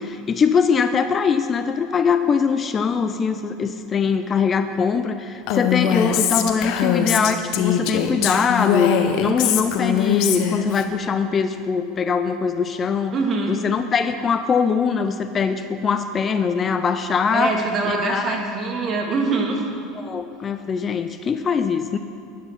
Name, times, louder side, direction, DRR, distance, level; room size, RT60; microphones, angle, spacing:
voice 1, 0.0-13.1 13.5-17.5 17.9-18.4 20.0-22.0, left 6 dB, 30° left, 9 dB, 0.6 m, -22 dB
Female speech woman speaking, 5.5-10.8, left 8 dB, 60° left, 1.0 m, -21 dB
voice 2, 13.1-13.5 17.3-19.6, right 3 dB, 35° right, 1 dB, 2.2 m, -23 dB
11.0 x 10.5 x 5.7 m, 2.4 s
supercardioid pair, 105°, 0 cm